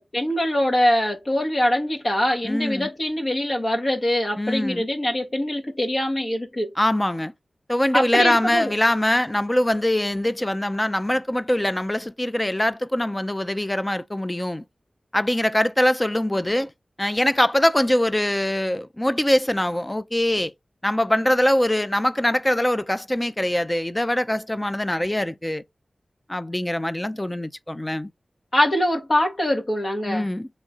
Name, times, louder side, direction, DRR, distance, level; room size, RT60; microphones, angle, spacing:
voice 1, 0.0-6.7 7.9-8.7 28.5-30.3, left 1 dB, 50° left, 1.5 m, -23 dB
voice 2, 2.4-2.9 4.4-4.9 6.8-7.3 7.7-14.6 15.1-16.7 17.0-20.5 20.8-25.6 26.3-28.1 30.1-30.5, left 1 dB, 20° left, 0.5 m, -23 dB
3.7 x 3.1 x 3.8 m
wide cardioid pair, 55°, 0 cm